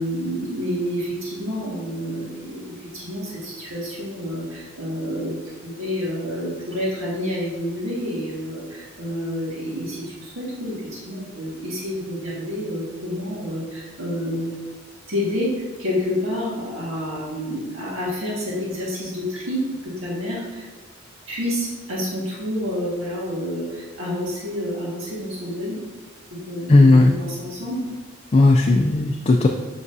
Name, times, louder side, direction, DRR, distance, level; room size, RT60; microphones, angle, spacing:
voice 1, 0.0-14.5 15.1-20.7 21.3-25.8 26.3-27.8, equal, 85° right, -5 dB, 1.8 m, -29 dB
voice 2, 26.7-27.1 28.3-29.5, left 2 dB, 30° left, 2 dB, 0.4 m, -15 dB
7.6 x 5.9 x 2.7 m, 1.3 s
head